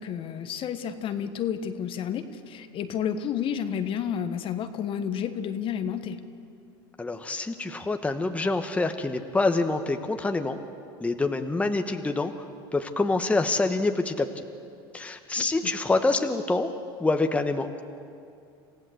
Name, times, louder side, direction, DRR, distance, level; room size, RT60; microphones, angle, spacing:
voice 1, 0.0-6.2 15.4-15.7, left 8 dB, 45° left, 9 dB, 1.3 m, -31 dB
voice 2, 7.0-10.6 11.0-12.3 12.7-14.3 14.9-16.7 17.0-17.8, left 3 dB, 10° left, 6 dB, 1.2 m, -26 dB
27.5 x 15.5 x 7.9 m, 2.5 s
supercardioid pair, 100°, 13 cm